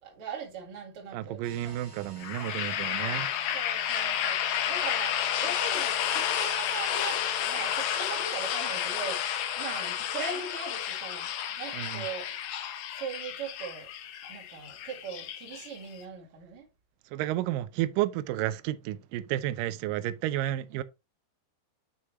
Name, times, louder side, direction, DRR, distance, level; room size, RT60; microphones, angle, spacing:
voice 1, 0.0-1.8 2.4-3.3 3.5-11.3 11.6-12.3 12.9-13.9 14.3-16.7 20.7-20.8, right 5 dB, 40° right, 2.9 m, -40 dB
voice 2, 1.1-3.3 11.7-12.0 17.1-20.8, right 14 dB, 80° right, 2.1 m, -31 dB
sound 1, 1.4-10.8, left 2 dB, 15° right, 2.6 m, -54 dB
sound 2, 2.2-16.0, left 10 dB, 90° left, 1.5 m, -31 dB
7.3 x 6.2 x 3.0 m
omnidirectional pair, 4.2 m